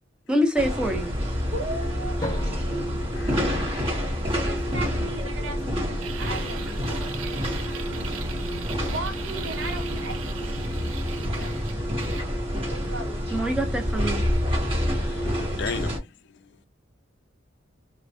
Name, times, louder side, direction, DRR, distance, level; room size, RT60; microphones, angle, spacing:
voice 1, 0.3-1.1 13.3-14.2, equal, 5° right, 0.6 m, -25 dB
sound 1, 0.6-16.0, equal, 25° right, 0.9 m, -28 dB
voice 2, 1.5-2.4 4.2-8.1 8.6-10.2 11.0-11.5 12.7-13.6, right 2 dB, 70° right, 0.8 m, -38 dB
Drum, 2.2-4.5, left 1 dB, 20° left, 1.0 m, -38 dB
voice 3, 3.1-4.4 14.9-16.7, left 6 dB, 55° left, 0.3 m, -39 dB
sound 2, 6.0-12.3, right 7 dB, 90° right, 0.4 m, -40 dB
3.2 x 2.1 x 2.6 m
head